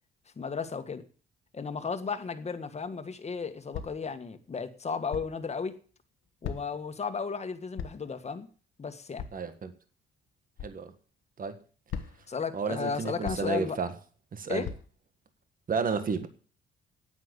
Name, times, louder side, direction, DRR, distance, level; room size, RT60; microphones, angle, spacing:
voice 1, 0.4-1.1 1.5-5.8 6.4-8.5 8.8-9.3 12.3-13.8 14.5-14.7, left 5 dB, 35° left, 1.7 m, -34 dB
sound 1, 3.7-4.1 5.1-5.4 6.4-6.9 7.8-8.1 9.2-9.4 10.6-10.8 11.9-12.3 13.2-13.6 14.6-14.8, left 7 dB, 80° left, 1.4 m, -38 dB
voice 2, 9.3-9.7 10.6-10.9 11.4-11.6 12.5-13.9 14.3-14.7 15.7-16.3, right 5 dB, 45° right, 1.6 m, -31 dB
9.3 x 9.1 x 8.2 m
cardioid pair, 90°, 20 cm